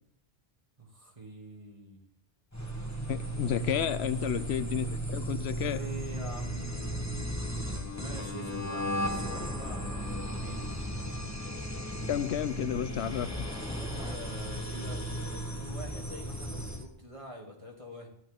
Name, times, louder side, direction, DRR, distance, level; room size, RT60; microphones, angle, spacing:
voice 1, 0.8-2.0 3.6-4.0 5.4-7.3 7.9-10.6 14.0-18.1, right 1 dB, 30° right, -1 dB, 2.6 m, -45 dB
sound 1, 2.5-16.9, equal, 15° left, 1.3 m, -35 dB
voice 2, 3.1-5.8 12.1-13.5, left 9 dB, 80° left, 14 dB, 0.9 m, -31 dB
sound 2, 8.9-14.2, equal, 5° right, 0.7 m, -48 dB
14.0 x 11.0 x 3.7 m, 0.75 s
omnidirectional pair, 1.1 m